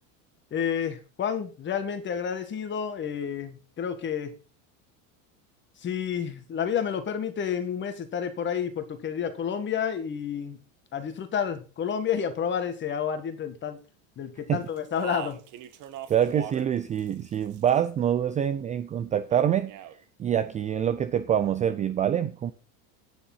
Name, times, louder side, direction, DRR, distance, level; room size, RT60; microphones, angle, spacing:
voice 1, 0.5-4.3 5.8-10.6 10.9-13.8 14.2-15.4, left 7 dB, 25° left, 1.7 m, -30 dB
Speech, 14.8-16.7 17.0-17.9 19.3-20.0, right 11 dB, 45° right, 1.4 m, -41 dB
voice 2, 16.1-19.7 20.2-22.5, right 9 dB, 20° right, 0.4 m, -25 dB
9.6 x 7.0 x 5.6 m
supercardioid pair, 145°, 41 cm